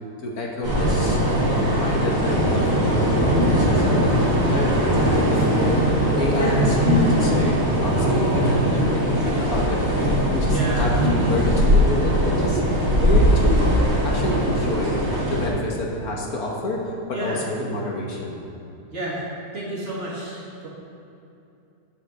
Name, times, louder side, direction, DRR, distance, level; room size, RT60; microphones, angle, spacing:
voice 1, 0.2-1.2 1.5-4.1 4.5-5.8 6.1-9.8 10.3-13.7 14.0-15.0 15.3-18.3, left 1 dB, 65° left, -2 dB, 1.6 m, -28 dB
sound 1, 0.6-15.5, equal, 85° right, 2.9 m, -20 dB
voice 2, 18.9-19.3 19.5-20.7, right 2 dB, 45° right, -6 dB, 2.2 m, -30 dB
9.6 x 5.0 x 6.4 m, 2.7 s
omnidirectional pair, 1.8 m